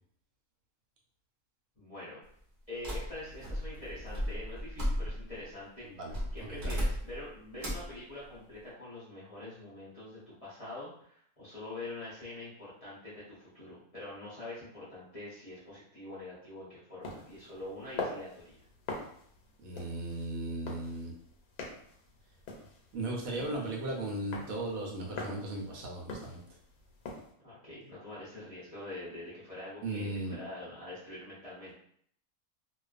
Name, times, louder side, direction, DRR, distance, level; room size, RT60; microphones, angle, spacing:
voice 1, 1.8-2.2 2.7-5.9 6.3-18.6 27.4-31.7, left 2 dB, 35° left, -10 dB, 0.6 m, -45 dB
sound 1, 2.8-5.4 6.1-7.2 7.6-7.9, equal, 45° right, 0.8 m, -35 dB
voice 2, 5.8-6.8 19.6-21.1 22.9-26.4 29.8-30.4, right 2 dB, 75° right, -1 dB, 1.0 m, -37 dB
sound 2, 17.0-27.3, left 3 dB, 80° left, 1.1 m, -44 dB
2.4 x 2.3 x 2.4 m, 0.66 s
omnidirectional pair, 1.5 m